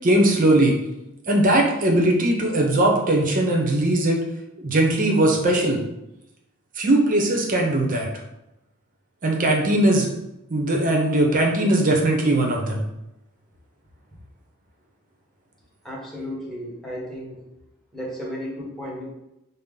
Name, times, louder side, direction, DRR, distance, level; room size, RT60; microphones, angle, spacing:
voice 1, 0.0-0.8 1.3-4.2 4.6-5.8 6.8-8.1 9.2-10.1 10.5-12.8, right 1 dB, 40° right, 0 dB, 0.7 m, -19 dB
voice 2, 15.8-17.4 17.9-19.0, equal, ahead, -6 dB, 1.0 m, -33 dB
5.5 x 2.1 x 3.6 m, 0.90 s
head